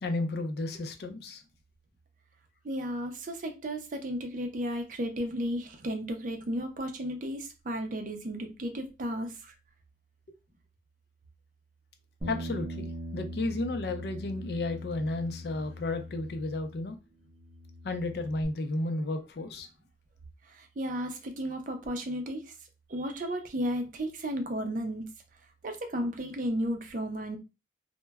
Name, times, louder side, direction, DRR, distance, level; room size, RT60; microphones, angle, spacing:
voice 1, 0.0-1.4 12.3-17.0 17.8-19.7, left 2 dB, 60° left, 7 dB, 0.4 m, -33 dB
voice 2, 2.6-9.5 20.5-22.5 22.9-25.0 25.6-27.4, equal, 45° right, 5 dB, 0.5 m, -34 dB
Bass guitar, 12.2-17.0 17.3-18.5, equal, 25° right, 0.9 m, -41 dB
2.1 x 2.0 x 3.3 m, 0.28 s
head